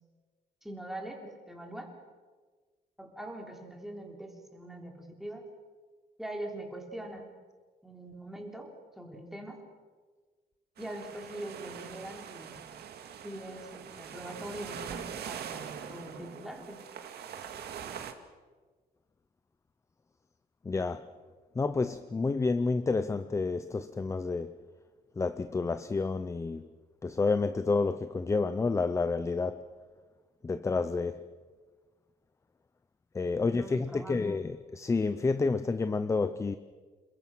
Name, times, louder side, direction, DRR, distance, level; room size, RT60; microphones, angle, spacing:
voice 1, 0.6-1.9 3.0-5.4 6.2-7.3 7.8-8.7 9.0-9.6 10.8-12.6 13.2-16.8 33.4-34.4, right 1 dB, ahead, 3.5 m, -42 dB
sound 1, 10.8-18.1, right 8 dB, 80° right, 2.0 m, -43 dB
voice 2, 20.6-21.1 21.6-24.6 25.2-26.7 27.0-29.6 30.4-31.3 33.1-36.6, left 4 dB, 15° left, 0.6 m, -29 dB
28.0 x 22.0 x 6.2 m
wide cardioid pair, 165°, 17 cm